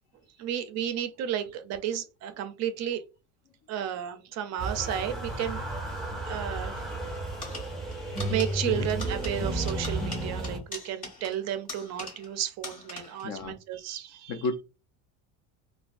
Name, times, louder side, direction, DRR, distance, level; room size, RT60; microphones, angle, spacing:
voice 1, 0.4-3.0 3.7-5.6 6.1-6.9 8.3-14.4, right 10 dB, 45° right, 0.4 m, -33 dB
sound 1, 4.6-10.6, right 2 dB, ahead, 0.9 m, -33 dB
sound 2, 7.4-12.4 12.6-13.3, left 2 dB, 20° left, 1.5 m, -42 dB
voice 2, 13.2-13.6 14.3-14.6, left 3 dB, 45° left, 0.5 m, -32 dB
3.3 x 2.2 x 2.4 m
cardioid pair, 140°, 37 cm